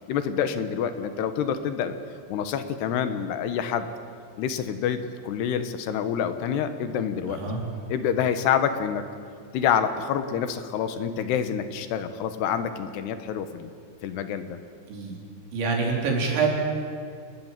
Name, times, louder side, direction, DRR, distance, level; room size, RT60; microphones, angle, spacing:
voice 1, 0.1-1.9 2.3-3.9 4.4-5.0 5.2-7.4 7.9-9.0 9.5-13.7 14.0-14.6, left 8 dB, 70° left, 9 dB, 3.2 m, -27 dB
voice 2, 7.3-7.6 14.9-15.2 15.5-16.5, right 5 dB, 80° right, -1 dB, 6.4 m, -25 dB
29.5 x 20.5 x 7.6 m, 2.3 s
omnidirectional pair, 5.2 m